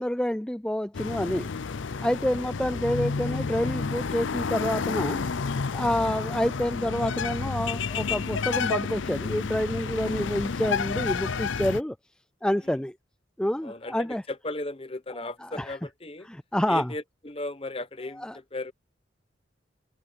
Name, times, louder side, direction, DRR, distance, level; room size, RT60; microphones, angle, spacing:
voice 1, 0.0-1.5 2.0-5.2 5.7-12.0 12.4-12.9 13.4-14.2 15.4-15.8 16.2-16.9 18.2-18.4, left 1 dB, 5° left, 0.3 m, -28 dB
sound 1, 0.9-11.8, left 5 dB, 80° left, 0.6 m, -30 dB
voice 2, 2.0-2.5 12.6-12.8 13.6-16.3 16.7-18.7, left 2 dB, 30° left, 0.9 m, -37 dB
open air
head